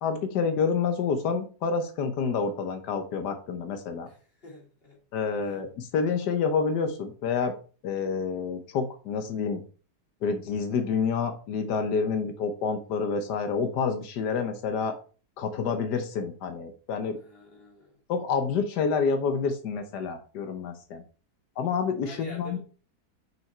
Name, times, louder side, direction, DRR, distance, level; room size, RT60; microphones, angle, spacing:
voice 1, 0.0-4.1 5.1-7.5 7.8-9.6 10.2-14.9 15.4-17.2 18.1-21.0 21.6-22.6, left 5 dB, 90° left, 7 dB, 1.5 m, -28 dB
voice 2, 4.0-5.0 5.4-5.6 17.1-18.0 22.0-22.6, left 1 dB, 35° left, -1 dB, 2.7 m, -47 dB
6.2 x 5.8 x 4.3 m, 0.38 s
omnidirectional pair, 1.7 m